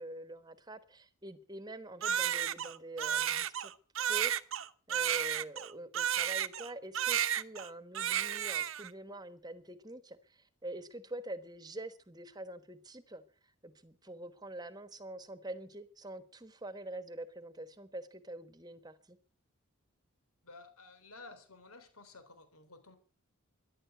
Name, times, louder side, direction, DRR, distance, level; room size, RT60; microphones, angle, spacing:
voice 1, 0.0-3.7 4.0-4.3 4.9-13.2 13.6-19.2, right 1 dB, 20° right, 12 dB, 1.2 m, -45 dB
Crying sobbing, 2.0-6.7 6.9-7.7 7.9-8.9, right 10 dB, 70° right, 0.9 m, -32 dB
voice 2, 20.4-23.0, left 3 dB, 90° left, 9 dB, 3.7 m, -53 dB
14.5 x 11.5 x 7.9 m, 0.42 s
head